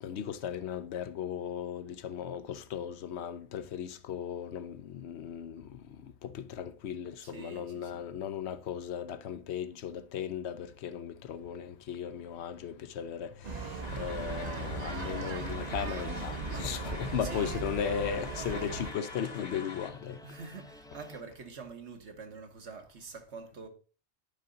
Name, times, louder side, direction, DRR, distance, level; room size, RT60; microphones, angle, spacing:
voice 1, 0.0-5.8 6.2-20.2, left 8 dB, 70° left, 0.8 m, -37 dB
voice 2, 7.2-8.0 17.2-17.7 20.2-23.7, right 4 dB, 70° right, 1.5 m, -46 dB
sound 1, 13.4-18.9, right 4 dB, 40° right, 0.7 m, -38 dB
sound 2, 13.8-19.9, left 4 dB, 45° left, 1.2 m, -46 dB
sound 3, 14.1-21.2, equal, 5° left, 0.4 m, -50 dB
10.5 x 4.8 x 3.9 m
omnidirectional pair, 1.2 m